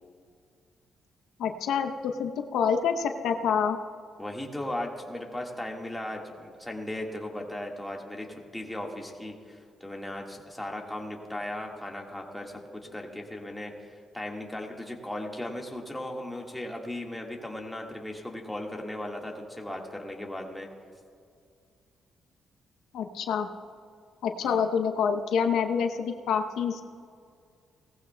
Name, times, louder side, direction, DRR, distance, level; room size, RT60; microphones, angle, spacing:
voice 1, 1.4-3.8 22.9-23.5 24.2-26.8, left 7 dB, 80° left, 6 dB, 0.7 m, -27 dB
voice 2, 4.2-20.7 24.4-24.7, left 1 dB, 5° left, 0 dB, 1.7 m, -37 dB
18.0 x 14.5 x 2.2 m, 2.2 s
cardioid pair, 105°, 0 cm